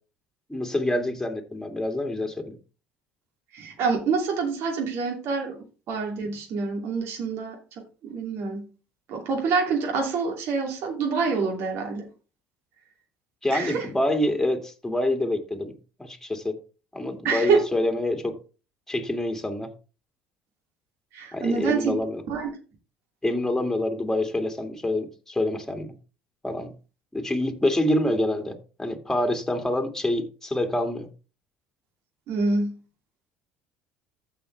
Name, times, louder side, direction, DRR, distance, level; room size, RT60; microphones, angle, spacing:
voice 1, 0.5-2.6 13.4-15.7 16.0-16.5 16.9-18.4 18.9-19.7 21.3-22.2 23.2-25.9 26.4-26.7 27.1-31.1, left 1 dB, 5° left, 2.2 m, -26 dB
voice 2, 3.5-7.6 8.0-8.6 9.1-12.1 13.5-13.9 17.2-17.6 21.1-21.9 22.3-22.5 32.3-32.7, right 5 dB, 60° right, 2.7 m, -26 dB
15.0 x 5.1 x 3.3 m
supercardioid pair, 85°, 5 cm